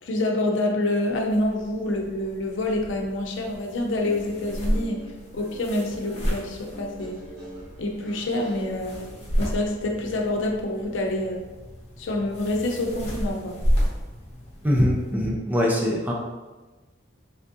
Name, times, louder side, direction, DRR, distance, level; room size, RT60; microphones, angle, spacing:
voice 1, 0.0-5.0 5.3-7.2 7.8-9.0 9.4-11.4 12.0-13.6, left 1 dB, 75° left, 1 dB, 0.6 m, -27 dB
sound 1, 1.1-15.1, equal, 35° left, 0.8 m, -32 dB
Guitar, 4.0-9.2, equal, 65° right, 1.3 m, -43 dB
voice 2, 14.6-16.1, left 1 dB, 10° right, -2 dB, 0.5 m, -22 dB
3.5 x 3.5 x 2.6 m, 1.2 s
head